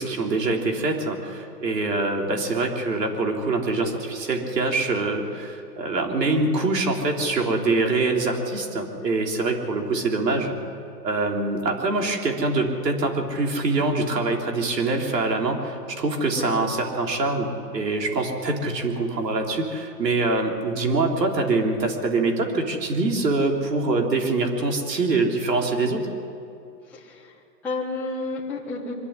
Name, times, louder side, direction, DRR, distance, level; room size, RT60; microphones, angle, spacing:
voice 1, 0.0-10.5 11.0-26.0, right 3 dB, 80° right, 2 dB, 3.8 m, -24 dB
voice 2, 26.9-27.3 27.6-28.9, left 3 dB, 5° left, -8 dB, 1.2 m, -31 dB
24.0 x 11.5 x 9.9 m, 2.5 s
hypercardioid pair, 165°, 49 cm